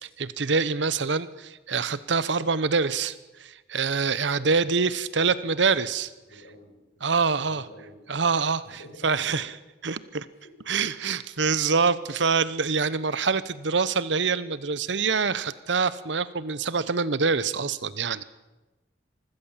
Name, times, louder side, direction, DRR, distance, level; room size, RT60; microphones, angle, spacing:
voice 1, 0.0-6.1 7.0-7.6 8.1-8.6 9.0-9.5 9.8-10.3 10.7-18.2, right 5 dB, 75° right, 16 dB, 0.9 m, -25 dB
voice 2, 4.3-4.8 5.1-5.9 6.2-8.0 8.6-9.3 10.3-10.5, left 1 dB, 85° left, 3 dB, 5.9 m, -49 dB
25.0 x 15.5 x 7.4 m, 1.1 s
head